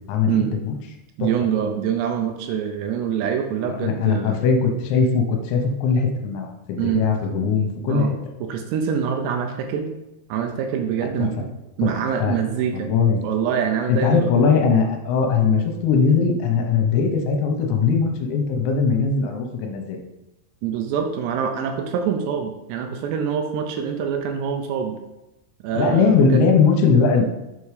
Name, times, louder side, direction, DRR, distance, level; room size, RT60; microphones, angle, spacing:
voice 1, 1.2-4.4 6.8-7.0 7.9-8.1 8.4-9.9 10.3-11.5 11.8-12.9 13.2-14.3 20.6-25.0 25.6-26.4, right 8 dB, 80° right, 5 dB, 2.6 m, -25 dB
voice 2, 3.8-8.1 11.2-11.4 11.8-11.9 12.2-12.4 12.7-13.2 13.9-20.0 25.8-27.3, left 5 dB, 80° left, 3 dB, 3.1 m, -20 dB
7.2 x 4.6 x 4.8 m, 0.94 s
omnidirectional pair, 5.2 m